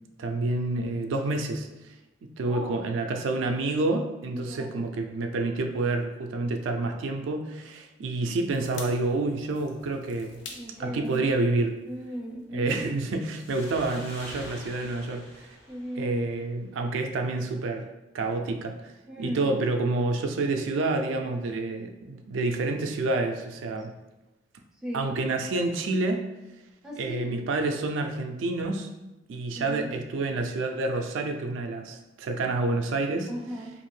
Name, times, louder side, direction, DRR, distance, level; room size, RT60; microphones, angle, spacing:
voice 1, 0.2-1.7 2.2-10.4 10.8-11.8 12.5-15.5 16.0-17.9 18.1-18.9 19.2-23.9 24.9-26.2 27.0-28.9 29.3-33.3, right 2 dB, 90° right, 4 dB, 0.3 m, -28 dB
voice 2, 2.4-2.9 4.3-4.8 10.5-11.4 11.9-12.8 15.7-16.3 19.1-19.6 24.8-25.1 26.8-27.4 29.5-29.9 33.3-33.7, equal, 5° right, -3 dB, 0.4 m, -37 dB
sound 1, 8.5-13.0 13.3-13.4, left 4 dB, 65° left, 0.5 m, -47 dB
sound 2, 13.4-16.8, left 1 dB, 85° left, 1.3 m, -46 dB
2.7 x 2.5 x 3.1 m, 1.0 s
head